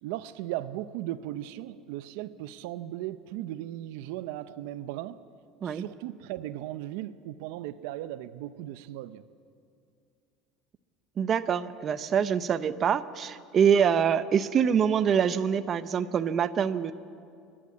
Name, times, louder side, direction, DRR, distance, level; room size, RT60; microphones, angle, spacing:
voice 1, 0.0-5.2 5.6-9.2, right 14 dB, 80° right, 0.6 m, -37 dB
voice 2, 11.2-16.9, right 7 dB, 30° right, 0.6 m, -25 dB
28.0 x 11.0 x 8.4 m
cardioid pair, 150°, 0 cm